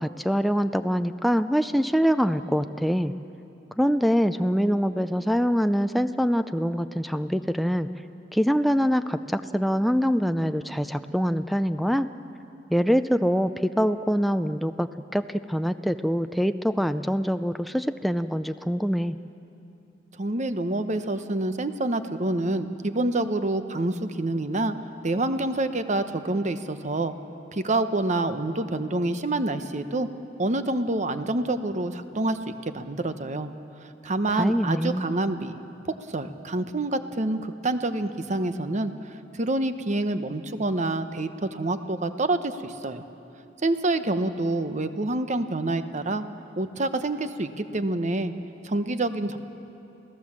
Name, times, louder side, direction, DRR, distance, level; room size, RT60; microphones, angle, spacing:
voice 1, 0.0-3.1 3.8-7.9 8.3-12.1 12.7-19.2 34.3-35.1, equal, ahead, 9 dB, 0.4 m, -24 dB
voice 2, 20.2-24.7 25.0-27.1 27.5-30.1 30.4-33.5 33.8-35.5 35.8-38.9 39.3-43.0 43.6-46.2 46.6-48.3 48.6-49.4, right 2 dB, 40° right, 10 dB, 0.9 m, -27 dB
28.0 x 17.0 x 7.4 m, 2.8 s
head